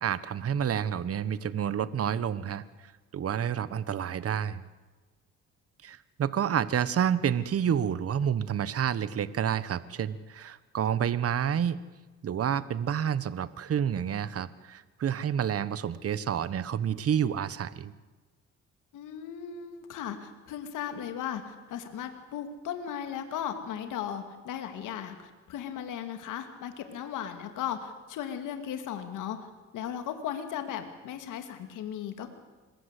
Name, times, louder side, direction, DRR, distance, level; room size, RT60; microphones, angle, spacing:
voice 1, 0.0-2.6 3.1-4.6 5.8-11.8 12.2-17.9, right 8 dB, 50° right, 16 dB, 1.2 m, -29 dB
voice 2, 18.9-32.3, left 9 dB, 85° left, 7 dB, 2.6 m, -37 dB
26.5 x 21.5 x 8.3 m, 1.3 s
cardioid pair, 90°, 30 cm